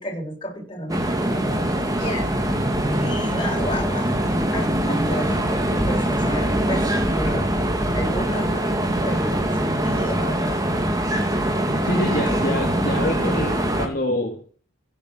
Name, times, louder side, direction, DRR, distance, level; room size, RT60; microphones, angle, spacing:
voice 1, 0.0-2.3 3.0-7.5 7.9-8.7 9.0-10.6, equal, 25° left, 1 dB, 7.1 m, -31 dB
sound 1, 0.9-13.9, right 1 dB, 20° right, 2.5 m, -23 dB
voice 2, 11.8-14.5, left 1 dB, 45° left, 1 dB, 2.9 m, -26 dB
16.5 x 9.4 x 6.6 m, 0.40 s
head